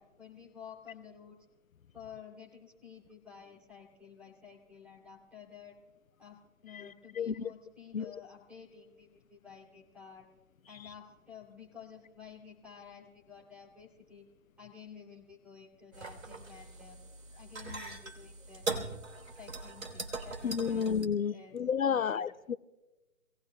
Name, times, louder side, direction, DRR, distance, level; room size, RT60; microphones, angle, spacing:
voice 1, 0.0-1.3 1.9-5.7 6.2-10.3 10.7-14.2 14.6-17.0 17.3-19.0 19.4-20.8 21.3-22.2, left 7 dB, 5° right, -2 dB, 2.7 m, -52 dB
voice 2, 6.7-7.5 7.9-8.1 20.4-22.6, left 7 dB, 75° left, 15 dB, 0.7 m, -31 dB
sound 1, 15.9-21.0, right 3 dB, 75° right, 3.4 m, -41 dB
28.0 x 18.0 x 2.2 m, 1.1 s
figure-of-eight pair, 155°, 41 cm